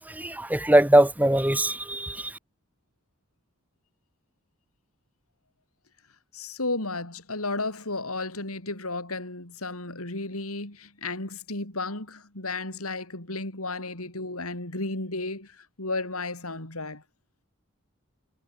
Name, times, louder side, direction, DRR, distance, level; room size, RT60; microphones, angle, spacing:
voice 1, 0.1-2.3, right 1 dB, 5° right, 1.8 m, -21 dB
voice 2, 6.3-17.0, left 2 dB, 85° left, 6.4 m, -33 dB
head